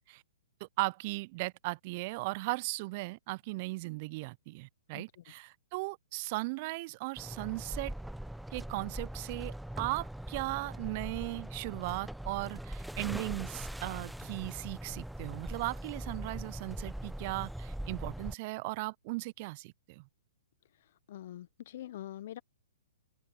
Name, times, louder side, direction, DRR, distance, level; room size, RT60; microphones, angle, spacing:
voice 1, 0.8-7.9 8.5-20.0, right 24 dB, 45° right, 0.4 m, -37 dB
voice 2, 4.9-5.2 20.7-22.4, left 12 dB, 55° left, 0.7 m, -45 dB
sound 1, 7.2-18.3, right 1 dB, ahead, 0.6 m, -41 dB
open air
hypercardioid pair, 125°, 0 cm